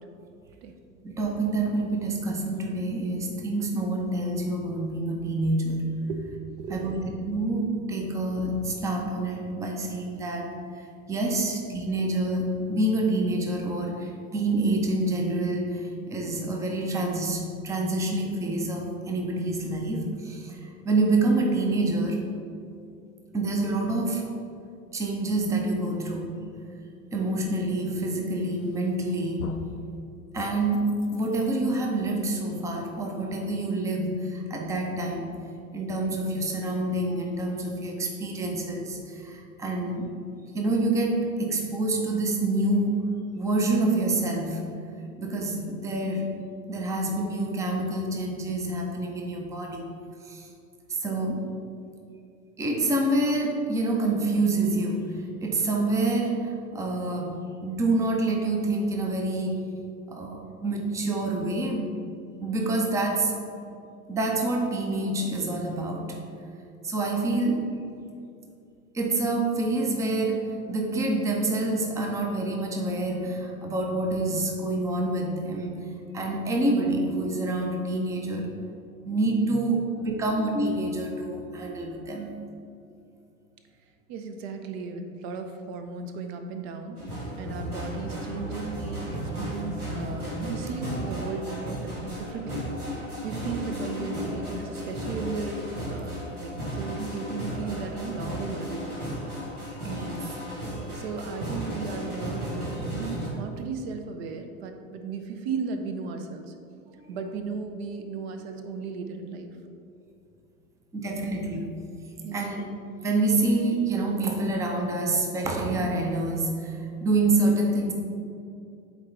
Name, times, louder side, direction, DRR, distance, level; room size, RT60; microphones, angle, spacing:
voice 1, 1.0-5.8 6.7-10.5 10.7-22.2 23.3-24.2 24.9-26.4 27.1-29.5 29.9-30.0 30.3-35.3 35.7-40.1 40.5-43.1 43.3-44.6 45.2-46.4 46.7-49.9 50.2-50.5 50.9-51.5 52.6-59.7 60.1-61.9 62.4-63.4 64.1-66.2 66.8-67.7 68.9-75.9 76.1-78.5 79.1-82.4 99.8-100.3 107.0-107.1 110.9-111.7 112.3-112.6 113.0-117.9, right 2 dB, 5° right, 1 dB, 0.5 m, -27 dB
voice 2, 6.6-6.9 84.1-87.0 87.4-92.7 93.2-95.6 95.9-99.0 101.0-106.5 107.1-109.5 112.2-112.5, right 4 dB, 45° right, 6 dB, 0.7 m, -35 dB
sound 1, 28.6-29.0 29.4-29.8 30.3-31.8, left 4 dB, 90° left, 0.5 m, -42 dB
sound 2, 87.0-103.3, equal, 90° right, 1.5 m, -34 dB
8.4 x 3.8 x 3.3 m, 2.5 s
figure-of-eight pair, 85°, 43 cm